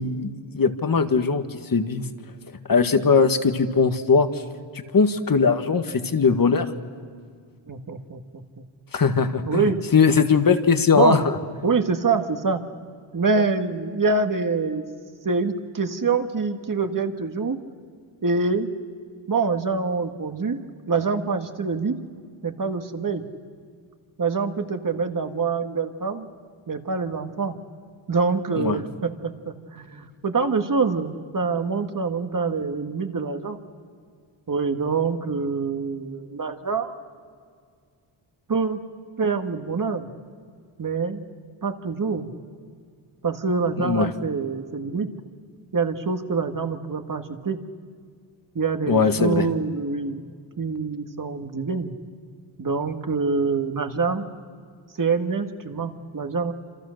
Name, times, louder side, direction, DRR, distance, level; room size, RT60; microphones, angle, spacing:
voice 1, 0.0-2.0 2.7-4.4 4.7-6.7 8.9-11.4 28.6-28.8 43.8-44.1 48.9-49.5, left 5 dB, 45° left, 8 dB, 1.7 m, -20 dB
voice 2, 7.7-8.6 9.4-9.9 10.9-11.2 11.6-12.6 13.1-14.8 15.2-17.6 18.2-18.7 19.3-20.6 20.9-22.0 22.4-23.2 24.2-26.3 26.7-27.6 28.1-33.6 34.5-36.9 38.5-38.8 39.2-40.1 40.8-41.2 41.6-42.3 43.2-45.1 45.7-47.6 48.6-50.2 50.6-52.0 52.6-54.3 55.0-56.5, right 4 dB, 40° right, 6 dB, 1.8 m, -25 dB
27.5 x 27.0 x 6.5 m, 2.1 s
cardioid pair, 75°, 47 cm